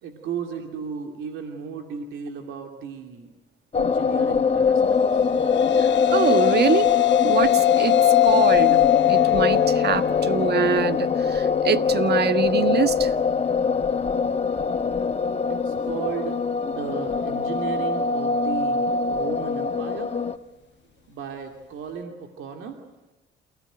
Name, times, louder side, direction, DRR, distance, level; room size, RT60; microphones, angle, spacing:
voice 1, 0.0-3.3 3.7-5.3 15.6-20.1 21.1-22.8, right 6 dB, 80° right, 4 dB, 2.7 m, -35 dB
sound 1, 3.7-20.4, left 5 dB, 30° left, 1.4 m, -23 dB
sound 2, 5.1-13.6, left 16 dB, 65° left, 1.2 m, -23 dB
voice 2, 5.8-6.9 7.2-8.8 9.1-13.1, right 7 dB, 55° right, 11 dB, 1.6 m, -24 dB
29.0 x 17.0 x 9.2 m, 1.1 s
cardioid pair, 90°, 20 cm